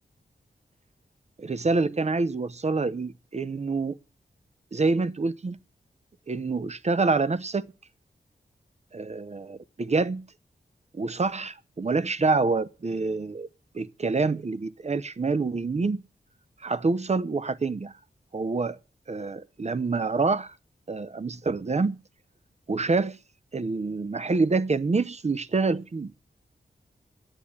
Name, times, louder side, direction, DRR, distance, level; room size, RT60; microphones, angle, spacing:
voice 1, 1.4-4.0 4.7-5.6 6.3-7.7 8.9-10.2 10.9-13.5 13.7-16.0 16.6-17.9 18.3-18.8 19.1-20.5 20.9-22.0 22.7-23.2 23.5-26.1, right 3 dB, 40° right, 0.8 m, -26 dB
10.0 x 8.4 x 8.7 m
cardioid pair, 65°, 17 cm